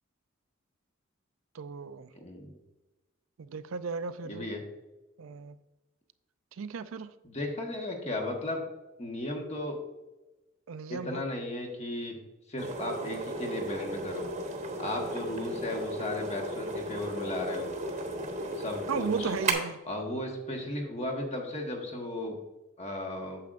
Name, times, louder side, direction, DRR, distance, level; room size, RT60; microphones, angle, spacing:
voice 1, 1.5-2.1 3.4-4.5 5.2-5.6 6.6-7.1 10.7-11.2 18.9-19.8, right 5 dB, 90° right, 0.5 m, -35 dB
voice 2, 2.1-2.6 4.2-4.6 7.2-8.6 9.0-9.8 10.9-12.1 12.5-14.2 14.8-17.7 18.5-19.3 19.8-22.4 22.8-23.4, left 1 dB, 35° left, 1.3 m, -35 dB
sound 1, 12.6-19.5, right 2 dB, 35° right, 1.1 m, -35 dB
8.7 x 7.5 x 2.5 m
head